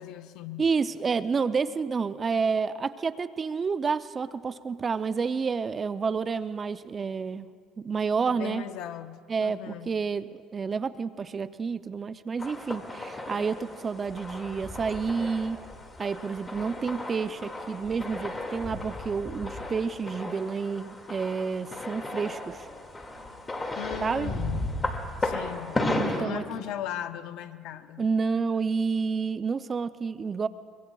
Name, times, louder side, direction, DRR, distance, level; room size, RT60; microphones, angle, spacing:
voice 1, 0.0-0.7 8.3-9.9 13.4-13.5 23.8-24.8 25.2-25.9 26.2-28.1, left 11 dB, 70° left, 11 dB, 0.7 m, -38 dB
voice 2, 0.6-7.5 7.8-8.6 9.3-15.6 16.0-22.7 24.0-24.3 26.0-26.4 28.0-30.5, right 5 dB, 35° right, 14 dB, 0.4 m, -29 dB
sound 1, 12.4-26.2, left 2 dB, 25° left, 2.1 m, -35 dB
24.0 x 23.5 x 2.3 m, 2.1 s
hypercardioid pair, 75°, 0 cm